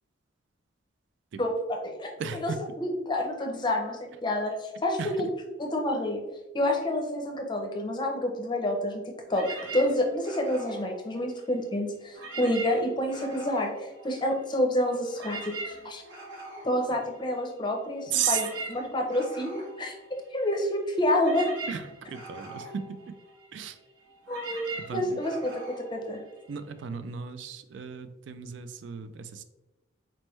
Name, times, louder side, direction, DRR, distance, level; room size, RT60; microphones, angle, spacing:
voice 1, 1.4-5.3 5.6-6.2 6.5-9.5 9.7-16.0 16.6-20.0 20.3-21.5 24.3-26.2, left 1 dB, 25° left, 2 dB, 0.6 m, -28 dB
voice 2, 2.2-2.6 5.0-5.3 18.1-18.4 21.7-23.1 23.5-23.8 24.8-25.2 26.5-29.4, right 8 dB, 70° right, 10 dB, 0.3 m, -34 dB
sound 1, 9.3-11.7 12.1-14.6 14.9-26.8, right 2 dB, 85° right, 1.2 m, -42 dB
4.2 x 3.2 x 3.1 m, 1.0 s
head